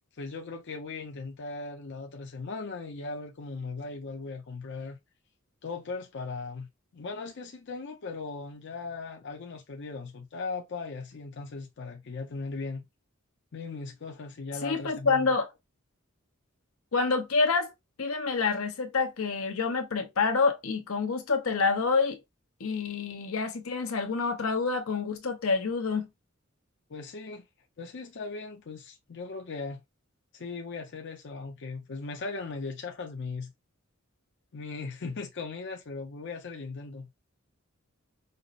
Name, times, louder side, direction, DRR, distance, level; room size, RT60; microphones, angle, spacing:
voice 1, 0.2-5.0 5.6-12.8 13.5-15.3 26.9-27.5 27.8-29.8 30.3-33.5 34.5-37.1, left 4 dB, 60° left, 0.6 m, -38 dB
voice 2, 14.6-15.5 16.9-17.7 18.0-22.2 22.6-26.1, left 4 dB, 90° left, 0.8 m, -27 dB
5.4 x 2.0 x 2.4 m
head